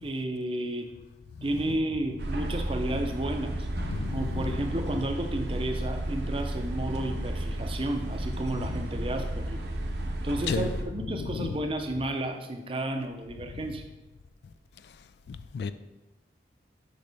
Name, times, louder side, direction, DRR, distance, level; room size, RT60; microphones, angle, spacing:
voice 1, 0.0-0.9 1.4-3.7 4.1-9.6 10.2-13.8, right 1 dB, 30° right, 0.6 m, -32 dB
sound 1, 2.2-10.8, right 1 dB, 70° right, 0.7 m, -33 dB
voice 2, 3.8-4.6 10.5-10.7 11.2-11.6 13.5-13.6 15.3-15.7, left 5 dB, 70° left, 0.3 m, -33 dB
6.6 x 5.4 x 3.4 m
head